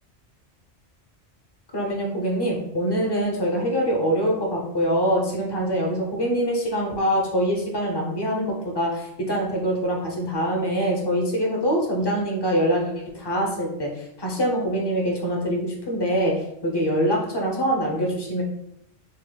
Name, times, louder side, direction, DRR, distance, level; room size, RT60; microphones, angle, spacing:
voice 1, 1.7-18.4, equal, 30° left, -1 dB, 0.5 m, -24 dB
5.0 x 2.1 x 2.3 m, 0.81 s
omnidirectional pair, 1.2 m